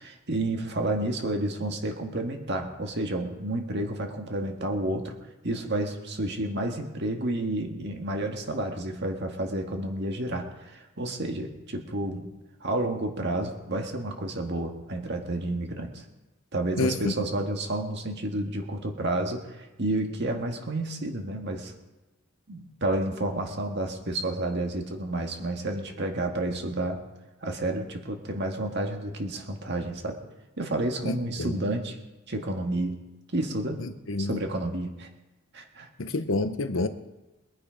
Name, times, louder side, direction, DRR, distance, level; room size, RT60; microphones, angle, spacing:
voice 1, 0.0-5.2 5.4-12.3 12.6-16.0 16.5-21.7 22.5-27.0 27.4-30.2 30.6-32.0 32.3-33.0 33.3-33.8 34.2-35.1 35.5-35.9, right 1 dB, 55° right, 1.8 m, -30 dB
voice 2, 16.8-17.1 31.0-31.5 33.8-34.4 36.0-36.9, left 2 dB, 70° left, 0.9 m, -28 dB
22.5 x 8.7 x 5.2 m
head